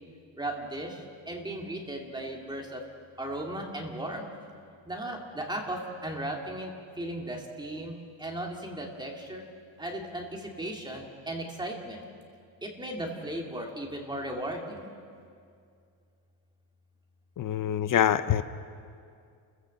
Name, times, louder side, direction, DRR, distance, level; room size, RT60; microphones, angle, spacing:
voice 1, 0.4-2.8 3.2-4.3 4.8-9.4 9.8-12.0 12.6-14.9, right 1 dB, 10° right, 0 dB, 2.3 m, -36 dB
voice 2, 17.4-18.4, left 10 dB, 50° left, 13 dB, 0.6 m, -25 dB
30.0 x 15.0 x 7.6 m, 2.3 s
cardioid pair, 180°, 43 cm